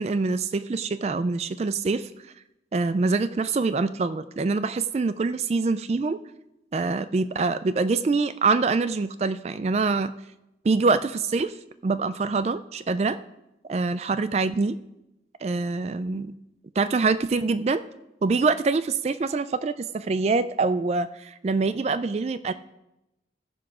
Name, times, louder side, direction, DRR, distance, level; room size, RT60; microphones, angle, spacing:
voice 1, 0.0-2.1 2.7-6.2 6.7-10.1 10.6-11.5 11.8-13.2 13.7-14.8 15.4-16.3 16.8-17.8 18.2-22.5, right 4 dB, 35° right, 12 dB, 0.3 m, -25 dB
15.0 x 5.8 x 4.9 m, 0.90 s
head